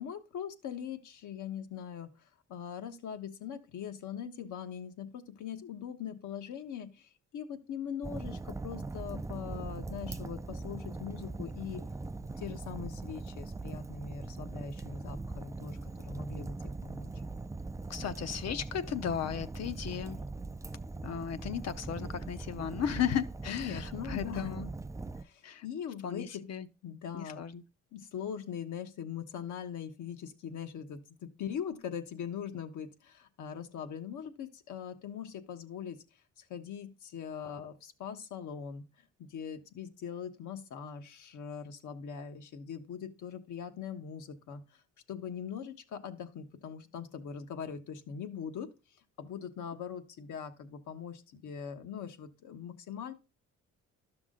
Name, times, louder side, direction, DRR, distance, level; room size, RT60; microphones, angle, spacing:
voice 1, 0.0-2.1 2.5-11.8 12.4-16.5 16.8-17.1 23.5-24.6 25.1-26.4 26.8-27.4 27.9-36.0 36.4-44.8 45.1-48.7 49.2-53.1, left 8 dB, 75° left, 1.2 m, -41 dB
Fire, 8.0-25.2, right 3 dB, 10° right, 0.4 m, -41 dB
voice 2, 17.9-20.2 21.0-24.7 25.4-25.6 26.0-26.7 27.1-27.6, left 8 dB, 55° left, 0.8 m, -35 dB
12.0 x 6.0 x 3.7 m
cardioid pair, 90°, 30 cm